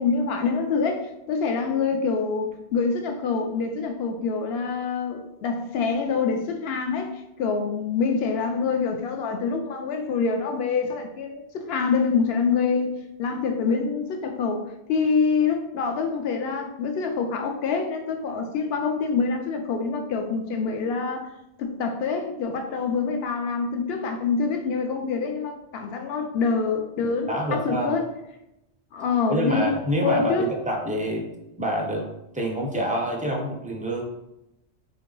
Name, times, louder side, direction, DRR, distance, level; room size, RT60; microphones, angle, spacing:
voice 1, 0.0-12.9 13.2-21.3 21.6-28.1 28.9-29.7 30.0-30.5, left 5 dB, 65° left, 4 dB, 0.8 m, -26 dB
voice 2, 27.0-27.9 29.3-31.3 31.6-32.1 32.3-34.0, equal, 15° right, 0 dB, 0.3 m, -27 dB
3.7 x 2.7 x 3.7 m, 0.88 s
omnidirectional pair, 1.2 m